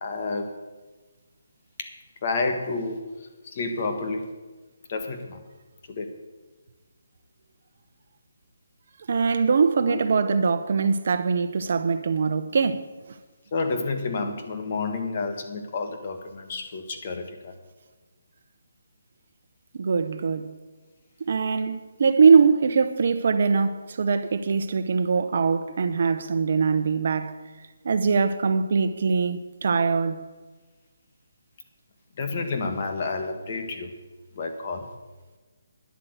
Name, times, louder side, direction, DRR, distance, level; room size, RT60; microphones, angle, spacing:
voice 1, 0.0-0.5 1.8-1.9 2.2-4.3 4.9-5.4 5.9-6.1 9.5-10.0 13.5-17.5 32.2-34.0 34.3-34.9, left 3 dB, 35° left, 1.6 m, -30 dB
voice 2, 9.1-12.9 19.7-20.5 21.3-27.4 27.8-30.2, right 5 dB, 50° right, 0.9 m, -22 dB
10.5 x 8.3 x 8.0 m
hypercardioid pair, 170°, 0 cm